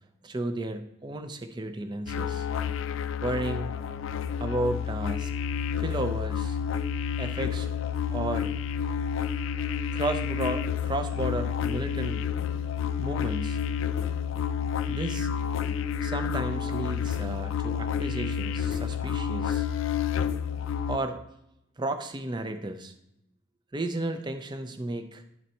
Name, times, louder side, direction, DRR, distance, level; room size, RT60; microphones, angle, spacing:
voice 1, 0.2-2.5 3.2-3.7 4.4-5.3 5.8-6.6 7.2-7.7 8.1-8.5 8.8-8.9 9.9-12.2 13.0-13.6 14.9-15.3 16.0-19.8 20.9-21.2 21.8-22.9 23.7-25.2, right 2 dB, 20° right, 7 dB, 0.5 m, -33 dB
sound 1, 2.1-21.0, left 8 dB, 75° left, 0.3 m, -30 dB
11.0 x 4.1 x 4.3 m, 0.84 s
head